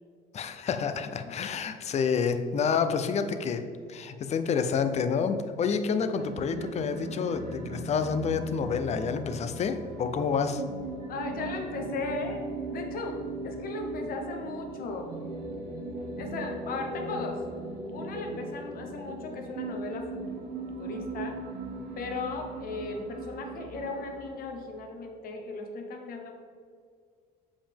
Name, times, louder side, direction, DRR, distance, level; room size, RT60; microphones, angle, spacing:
voice 1, 0.3-3.6 3.9-10.6, left 6 dB, 40° left, 9 dB, 0.5 m, -28 dB
sound 1, 6.1-24.7, right 2 dB, 85° right, 1.6 m, -39 dB
voice 2, 11.1-15.1 16.2-17.4 17.9-20.2 20.6-21.4 22.0-26.3, left 3 dB, 60° left, 3 dB, 1.1 m, -37 dB
7.3 x 5.0 x 3.6 m, 2.2 s
cardioid pair, 110°, 17 cm